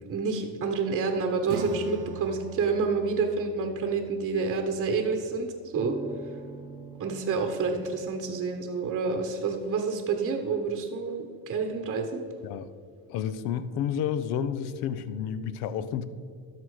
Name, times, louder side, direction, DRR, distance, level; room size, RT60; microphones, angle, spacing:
voice 1, 0.1-6.0 7.0-12.2, right 4 dB, 35° right, 4 dB, 1.0 m, -28 dB
Acoustic guitar / Strum, 1.5-6.7, right 7 dB, 85° right, 0.8 m, -42 dB
sound 1, 5.8-9.1, right 2 dB, 15° right, 0.5 m, -43 dB
voice 2, 13.1-16.1, left 8 dB, 70° left, 13 dB, 0.7 m, -30 dB
12.5 x 4.4 x 4.7 m, 2.1 s
supercardioid pair, 85°, 40 cm